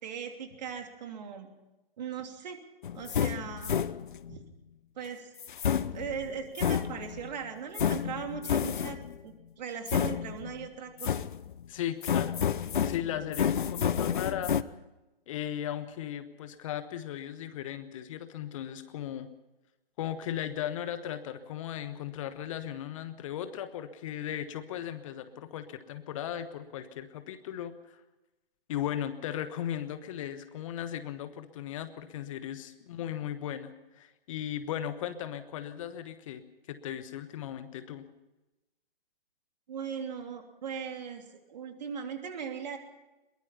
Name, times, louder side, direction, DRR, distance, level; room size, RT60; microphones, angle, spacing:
voice 1, 0.0-1.5 2.0-2.6 2.9-3.8 4.3-4.4 5.0-5.3 5.9-11.2 39.7-42.8, right 7 dB, 45° right, 5 dB, 3.2 m, -39 dB
sound 1, 2.8-4.3 5.4-7.3 7.8-9.2 9.9-10.7 11.0-11.6 12.0-14.6, left 8 dB, 60° left, 0.8 m, -30 dB
voice 2, 11.7-12.5 12.8-14.5 15.3-19.3 20.0-28.0 28.7-36.4 36.7-38.1, left 10 dB, 35° left, 11 dB, 1.2 m, -37 dB
22.0 x 21.0 x 5.6 m, 1.0 s
figure-of-eight pair, 125°, 29 cm